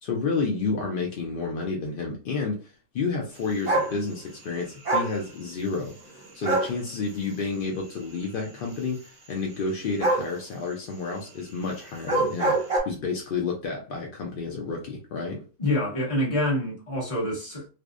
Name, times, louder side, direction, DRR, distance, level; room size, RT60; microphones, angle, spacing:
voice 1, 0.0-15.4, left 4 dB, 75° left, 0.5 m, -30 dB
sound 1, 3.7-3.9 4.9-5.1 6.4-6.7 10.0-10.3 12.0-12.8, right 2 dB, 40° right, 0.7 m, -24 dB
voice 2, 15.6-17.7, left 1 dB, 25° left, 0.9 m, -26 dB
2.5 x 2.1 x 2.3 m
omnidirectional pair, 1.5 m